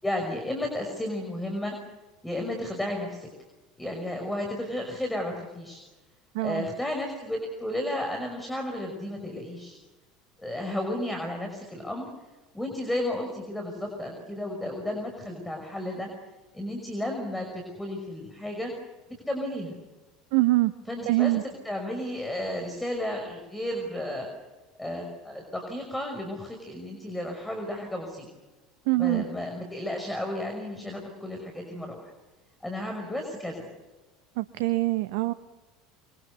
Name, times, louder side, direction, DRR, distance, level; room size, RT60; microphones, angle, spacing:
voice 1, 0.0-1.7 2.2-3.3 3.8-5.8 6.4-9.8 10.4-12.1 12.5-16.1 16.5-18.7 19.3-19.8 20.9-24.3 24.8-28.3 29.0-32.1 32.6-33.7, left 1 dB, 5° left, 3 dB, 5.7 m, -33 dB
voice 2, 6.3-6.7 20.3-20.7 21.1-21.4 28.9-29.3 34.4-35.3, right 19 dB, 65° right, 13 dB, 0.8 m, -24 dB
25.5 x 24.0 x 6.8 m, 1.2 s
figure-of-eight pair, 70°, 0 cm